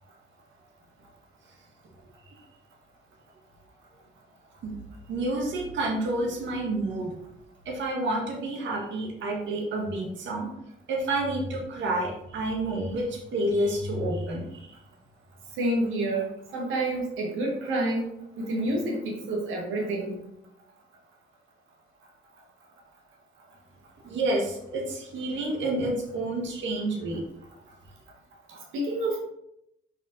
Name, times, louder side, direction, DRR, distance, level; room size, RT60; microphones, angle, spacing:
voice 1, 5.1-7.1 7.6-10.5 10.9-14.7 24.0-27.2, right 1 dB, 70° right, 0 dB, 1.6 m, -29 dB
voice 2, 15.6-18.1 18.4-20.2 28.5-29.2, right 1 dB, 85° right, -1 dB, 1.7 m, -28 dB
5.7 x 5.4 x 3.8 m, 0.78 s
cardioid pair, 90°, 20 cm